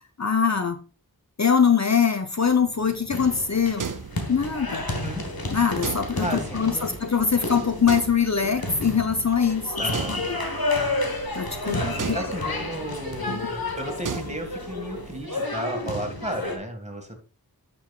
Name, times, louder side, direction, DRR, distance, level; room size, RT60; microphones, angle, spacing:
voice 1, 0.2-0.8 1.4-3.9 4.3-4.9 5.5-10.4 11.3-12.6 13.3-13.4, left 6 dB, 50° left, 7 dB, 0.8 m, -23 dB
sound 1, 2.7-15.3, right 6 dB, 60° right, 0.6 m, -38 dB
sound 2, 3.1-16.6, left 2 dB, 75° left, 1.5 m, -31 dB
voice 2, 4.9-5.2 6.2-7.0 9.8-10.2 11.6-17.1, equal, 20° right, 4 dB, 2.0 m, -33 dB
9.0 x 6.3 x 2.4 m, 0.35 s
wide cardioid pair, 40°, 36 cm